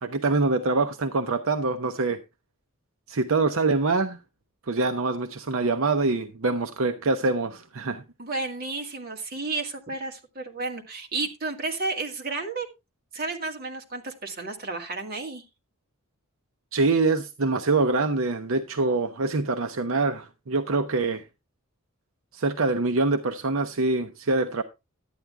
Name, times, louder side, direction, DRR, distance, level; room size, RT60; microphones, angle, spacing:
voice 1, 0.0-2.2 3.1-4.2 4.7-8.0 16.7-21.2 22.3-24.6, right 3 dB, 70° right, 0.7 m, -25 dB
voice 2, 8.2-12.7 13.1-15.4, right 3 dB, 45° right, 2.2 m, -32 dB
11.5 x 9.1 x 3.4 m
head